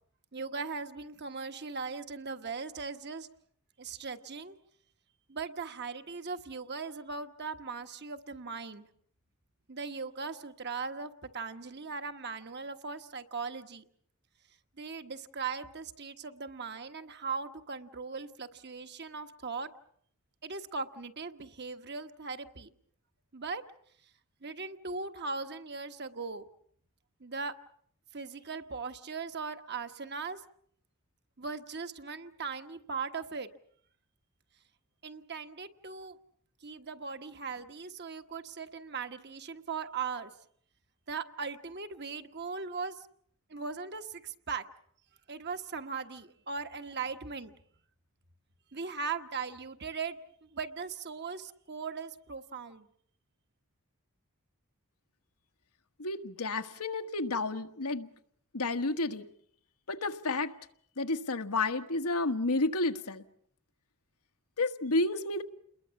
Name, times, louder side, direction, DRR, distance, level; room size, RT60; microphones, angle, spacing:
voice 1, 0.3-3.3 3.8-4.5 5.3-8.9 9.7-13.8 14.8-19.7 20.4-22.7 23.3-23.6 24.4-26.4 27.2-27.5 28.1-30.4 31.4-33.5 35.0-36.2 36.6-40.3 41.1-43.1 43.5-44.6 45.3-47.5 48.7-52.9, right 4 dB, 50° right, 8 dB, 1.4 m, -39 dB
voice 2, 56.0-58.1 58.5-59.3 59.9-60.5 61.0-63.2 64.6-65.4, left 2 dB, 85° left, 8 dB, 1.5 m, -31 dB
29.5 x 21.5 x 7.1 m, 0.64 s
head